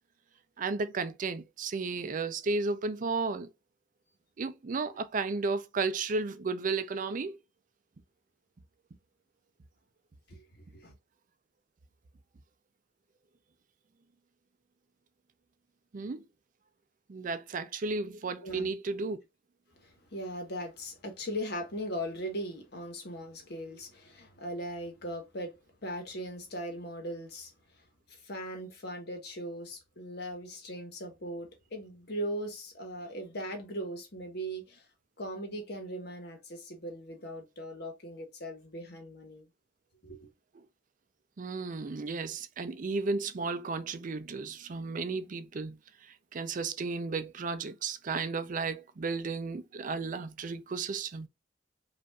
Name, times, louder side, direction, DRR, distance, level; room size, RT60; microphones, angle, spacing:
voice 1, 0.6-3.5 4.4-7.4 15.9-16.2 17.1-19.2 41.4-45.8 46.0-51.3, right 4 dB, 45° right, 0.5 m, -33 dB
voice 2, 18.4-18.7 19.7-25.5 25.8-27.5 28.1-34.9 35.2-39.5 40.0-40.3, equal, 60° left, 1.3 m, -39 dB
5.1 x 2.6 x 2.3 m
head